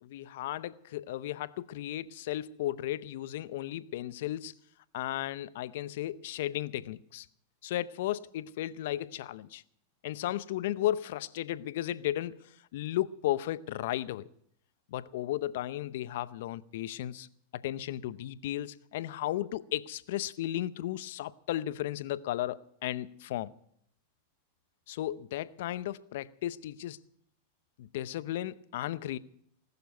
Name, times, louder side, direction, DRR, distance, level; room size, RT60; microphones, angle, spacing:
voice 1, 0.0-4.5 4.9-7.3 7.6-9.6 10.0-14.3 14.9-17.3 17.5-23.5 24.9-27.0 27.8-29.2, left 13 dB, 70° left, 0.7 m, -35 dB
19.5 x 6.9 x 9.3 m
hypercardioid pair, 110°, 0 cm